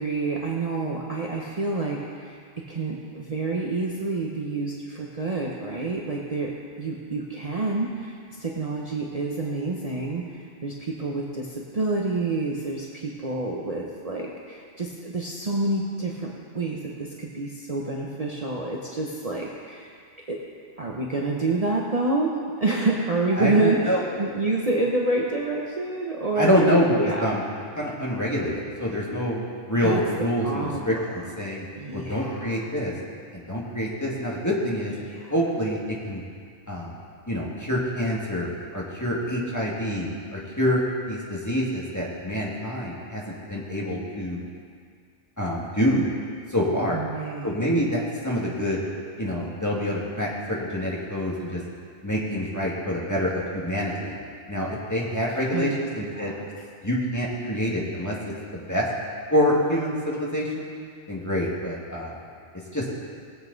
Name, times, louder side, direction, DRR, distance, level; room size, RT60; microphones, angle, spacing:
voice 1, 0.0-2.4 2.7-6.5 6.8-19.9 20.3-20.4 20.8-22.3 22.6-27.3 29.8-30.0 30.4-31.0 31.8-32.6 35.1-35.3 46.9-47.6 55.5-55.9 56.2-56.4, right 2 dB, 35° right, -2 dB, 1.0 m, -28 dB
voice 2, 23.4-24.0 26.4-27.4 27.8-29.4 29.7-31.7 31.9-32.9 33.3-34.9 35.3-36.2 36.7-37.0 37.3-44.4 45.4-46.1 46.5-47.0 47.4-48.8 49.2-51.6 52.0-54.2 54.5-56.3 56.8-58.2 58.5-58.9 59.3-60.7 61.1-62.1 62.7-62.9, equal, 15° left, -5 dB, 2.0 m, -26 dB
19.0 x 8.2 x 4.0 m, 2.1 s
omnidirectional pair, 1.2 m